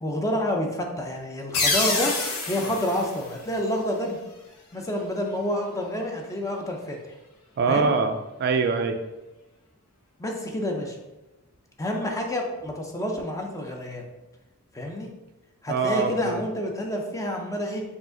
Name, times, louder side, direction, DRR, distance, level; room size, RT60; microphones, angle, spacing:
voice 1, 0.0-2.1 2.5-4.2 4.7-7.0 7.7-7.9 10.2-11.0 11.8-14.0 14.7-15.1 15.6-17.8, left 1 dB, 15° left, 2 dB, 0.5 m, -28 dB
sound 1, 1.5-4.1, left 3 dB, 80° left, 0.8 m, -27 dB
voice 2, 7.6-9.0 15.7-16.4, right 4 dB, 45° right, 7 dB, 0.3 m, -24 dB
4.7 x 2.5 x 3.8 m, 1.0 s
head